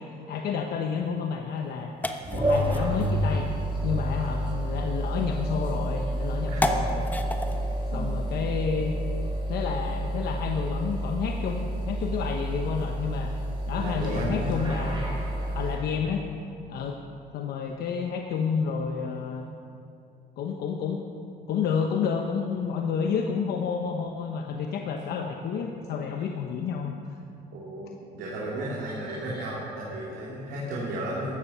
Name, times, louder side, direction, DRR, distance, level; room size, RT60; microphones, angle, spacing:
voice 1, 0.3-1.9 2.3-3.5 3.8-7.0 7.9-9.0 9.5-13.3 13.7-15.1 15.5-16.2 16.7-17.0 17.3-19.5 20.4-21.0 21.5-26.9 29.1-29.5, left 6 dB, 70° left, 3 dB, 1.1 m, -30 dB
sound 1, 0.8-9.4, left 1 dB, 10° left, 1.1 m, -36 dB
sound 2, 2.2-15.8, right 1 dB, 30° right, 4.6 m, -29 dB
voice 2, 6.4-6.9 7.9-8.0 13.8-14.5 27.5-31.3, right 1 dB, 85° right, -6 dB, 3.2 m, -34 dB
15.5 x 12.5 x 5.7 m, 2.6 s
cardioid pair, 110°, 17 cm